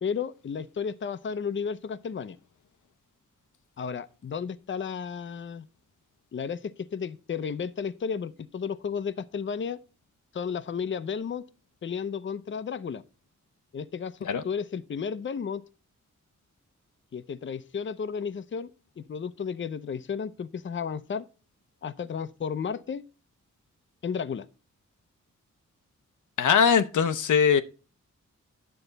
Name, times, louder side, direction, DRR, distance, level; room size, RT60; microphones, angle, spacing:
voice 1, 0.0-2.4 3.8-5.7 6.3-9.8 10.3-11.4 11.8-13.0 13.7-14.2 14.4-15.6 17.1-18.7 19.0-21.2 21.8-23.0 24.0-24.5, left 6 dB, 40° left, 0.6 m, -33 dB
voice 2, 26.4-27.6, left 7 dB, 80° left, 0.7 m, -21 dB
10.0 x 6.9 x 4.0 m
cardioid pair, 60°, 30 cm